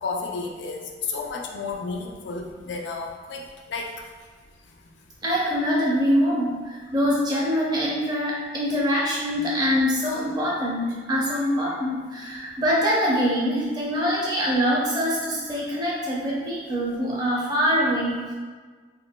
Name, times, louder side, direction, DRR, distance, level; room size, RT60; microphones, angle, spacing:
voice 1, 0.0-3.9, left 4 dB, 70° left, 1 dB, 0.4 m, -32 dB
voice 2, 5.2-18.3, equal, 20° right, -5 dB, 0.5 m, -24 dB
3.8 x 2.2 x 2.2 m, 1.5 s
head